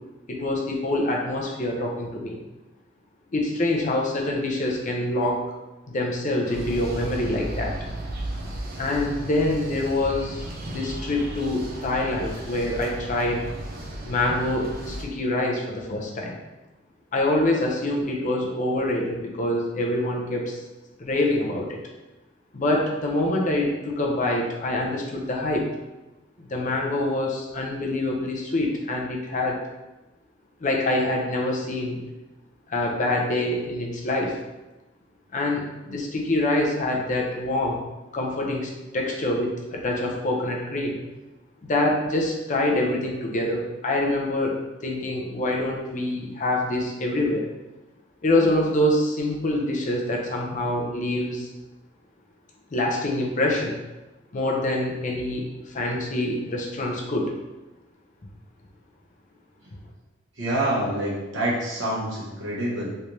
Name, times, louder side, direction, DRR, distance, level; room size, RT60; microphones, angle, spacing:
voice 1, 0.3-2.4 3.3-5.4 5.9-7.8 8.8-13.4 14.0-16.4 17.1-20.6 21.0-21.8 22.5-25.7 26.4-29.6 30.6-32.0 32.7-34.4 35.3-37.8 38.1-41.0 41.6-47.5 48.2-51.5 52.7-53.8 54.3-57.3, left 1 dB, 40° left, 0 dB, 0.6 m, -25 dB
sound 1, 6.4-15.1, right 1 dB, 50° right, 0.5 m, -35 dB
voice 2, 60.3-62.9, right 1 dB, 70° right, -5 dB, 1.1 m, -26 dB
3.2 x 3.1 x 2.7 m, 1.1 s
head